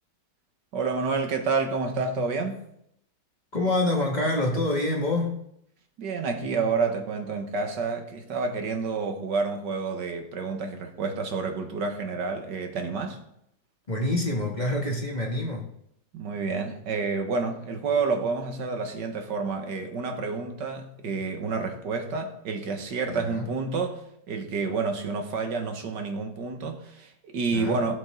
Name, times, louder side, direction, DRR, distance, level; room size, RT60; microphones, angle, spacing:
voice 1, 0.7-2.6 6.0-13.2 16.1-24.0 24.3-28.0, right 4 dB, 90° right, 4 dB, 2.0 m, -29 dB
voice 2, 3.5-5.4 13.9-15.6 23.1-23.5 27.5-27.8, left 2 dB, 25° left, -1 dB, 1.9 m, -26 dB
16.0 x 7.5 x 3.8 m, 0.75 s
omnidirectional pair, 1.8 m